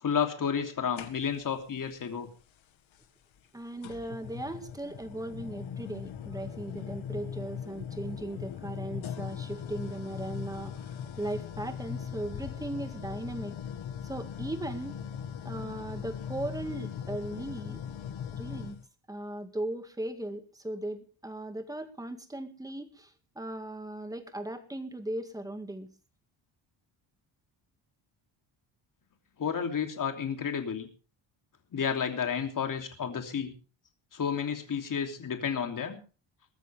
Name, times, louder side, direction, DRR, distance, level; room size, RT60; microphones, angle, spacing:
voice 1, 0.0-2.3 29.4-30.9 31.7-33.5 34.1-36.0, left 7 dB, 40° left, 5 dB, 3.1 m, -31 dB
sound 1, 1.0-1.6 2.9-3.0 3.8-18.8, left 8 dB, 75° left, 2.0 m, -39 dB
voice 2, 3.5-13.6 14.0-15.0 15.4-17.8 18.3-18.8 19.1-25.9, right 1 dB, 5° right, 8 dB, 2.0 m, -38 dB
21.5 x 13.5 x 3.5 m, 0.36 s
cardioid pair, 155°, 47 cm